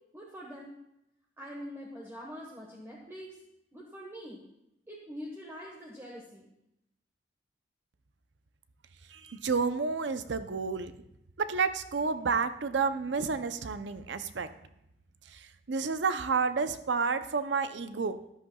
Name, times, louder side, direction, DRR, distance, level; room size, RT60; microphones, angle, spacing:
voice 1, 0.1-0.7 1.4-3.4 3.7-4.4 4.9-6.5, equal, 15° right, -3 dB, 1.3 m, -44 dB
voice 2, 9.1-10.9 11.4-14.5 15.3-18.2, right 5 dB, 75° right, 11 dB, 0.6 m, -30 dB
13.5 x 10.5 x 2.3 m, 0.83 s
head